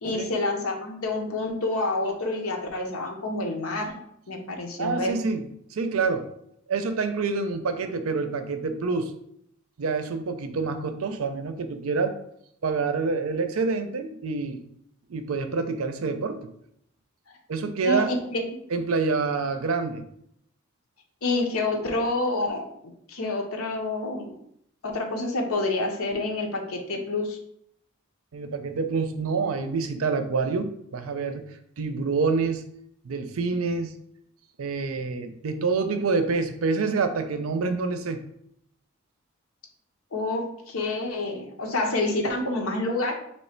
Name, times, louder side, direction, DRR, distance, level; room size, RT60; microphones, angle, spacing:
voice 1, 0.0-4.0 4.3-5.1 17.8-18.6 21.2-24.3 24.8-27.4 40.1-43.1, left 2 dB, 90° left, 3 dB, 0.8 m, -28 dB
voice 2, 4.8-5.4 5.7-6.3 6.7-9.1 9.8-12.2 12.6-14.6 15.1-16.5 17.5-18.1 18.7-20.1 28.3-31.5 31.8-32.7 33.0-34.0 34.6-38.2, right 4 dB, 80° right, 8 dB, 0.5 m, -27 dB
3.2 x 3.1 x 4.4 m, 0.73 s
head